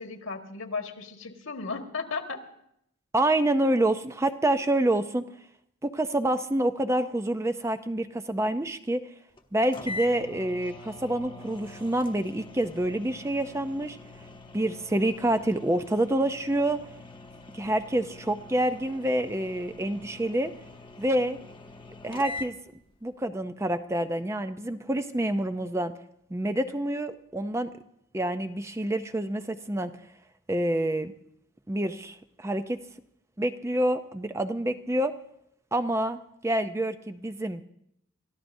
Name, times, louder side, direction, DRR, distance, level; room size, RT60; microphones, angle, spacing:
voice 1, 0.0-2.4, left 4 dB, 75° left, 4 dB, 1.7 m, -35 dB
voice 2, 3.1-5.3 5.8-9.0 9.5-14.0 14.5-16.9 17.5-20.5 21.0-21.4 22.0-22.6 23.0-25.9 26.3-27.7 28.1-29.9 30.5-31.1 31.7-32.8 33.4-35.1 35.7-37.6, right 1 dB, 15° right, 8 dB, 0.5 m, -27 dB
sound 1, 9.4-9.5 9.7-22.5, left 3 dB, 25° left, 1.0 m, -44 dB
28.0 x 14.0 x 2.7 m, 0.74 s
head